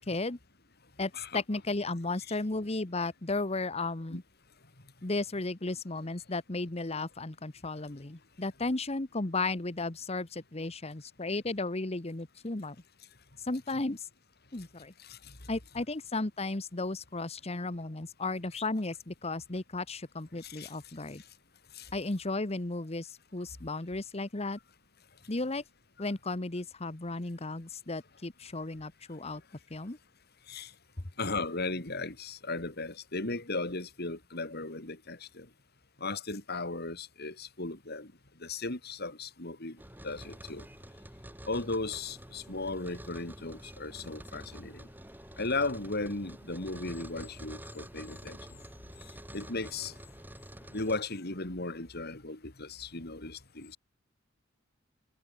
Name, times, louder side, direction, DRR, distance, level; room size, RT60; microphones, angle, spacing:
voice 1, 0.1-0.4 1.0-4.2 5.0-12.8 13.4-14.1 14.5-14.9 15.5-21.2 21.9-24.6 25.3-25.6 26.0-29.4 29.7-30.0, left 2 dB, 30° left, 1.2 m, -34 dB
voice 2, 31.2-35.4 36.0-38.1 38.4-39.8 40.0-40.6 41.5-44.8 45.4-48.4 49.3-49.9 50.7-53.8, left 3 dB, 50° left, 3.5 m, -36 dB
sound 1, 39.8-51.0, right 1 dB, 10° right, 2.4 m, -48 dB
head